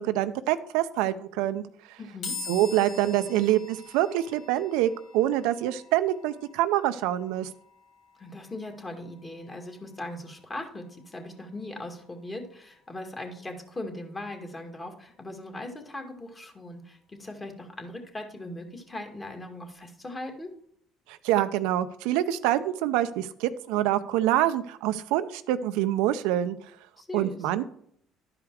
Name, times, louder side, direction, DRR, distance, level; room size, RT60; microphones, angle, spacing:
voice 1, 0.0-1.6 1.9-2.0 2.5-7.5 21.1-26.6 27.1-27.6, right 13 dB, 85° right, 11 dB, 0.5 m, -26 dB
voice 2, 2.0-2.4 8.2-20.5 27.0-27.5, left 1 dB, 25° left, 4 dB, 2.0 m, -39 dB
sound 1, 2.2-15.6, left 5 dB, 80° left, 3.0 m, -47 dB
11.5 x 5.0 x 4.7 m, 0.68 s
supercardioid pair, 90°, 0 cm